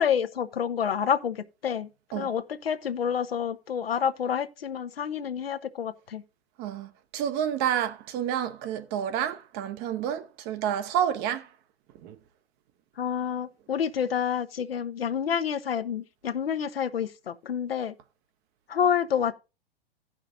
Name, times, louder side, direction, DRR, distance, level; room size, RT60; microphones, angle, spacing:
voice 1, 0.0-1.9 2.1-6.2 13.0-17.9 18.7-19.3, left 8 dB, 75° left, 0.8 m, -28 dB
voice 2, 6.6-11.5 12.0-12.2, right 9 dB, 30° right, 0.8 m, -29 dB
16.5 x 5.7 x 2.5 m
figure-of-eight pair, 105°, 30 cm